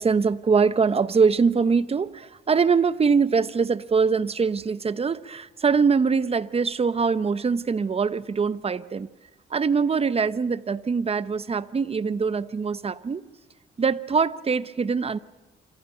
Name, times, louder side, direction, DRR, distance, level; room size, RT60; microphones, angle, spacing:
voice 1, 0.0-9.1 9.5-13.2 13.8-15.2, right 5 dB, 30° right, 15 dB, 0.9 m, -23 dB
27.5 x 25.5 x 5.7 m, 1.1 s
cardioid pair, 90°, 20 cm